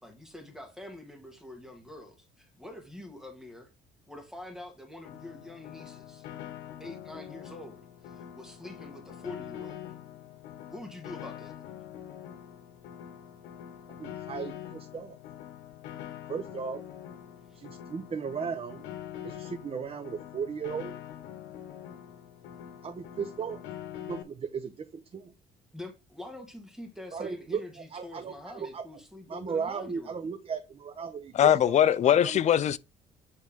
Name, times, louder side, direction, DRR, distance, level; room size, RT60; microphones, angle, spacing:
voice 1, 0.0-3.7 4.1-6.3 6.8-9.8 10.7-11.5 17.5-17.7 25.7-30.2, left 1 dB, 5° right, 1.7 m, -45 dB
Piano, 5.0-24.2, left 10 dB, 85° left, 1.0 m, -44 dB
voice 2, 14.0-15.2 16.3-16.8 17.6-18.8 19.2-20.9 22.8-23.6 24.1-25.3 27.1-27.6 27.9-28.8 29.3-31.7 32.0-32.5, right 6 dB, 35° right, 0.9 m, -36 dB
voice 3, 31.4-32.8, left 10 dB, 45° left, 0.5 m, -21 dB
9.6 x 3.5 x 3.6 m
cardioid pair, 110°, 17 cm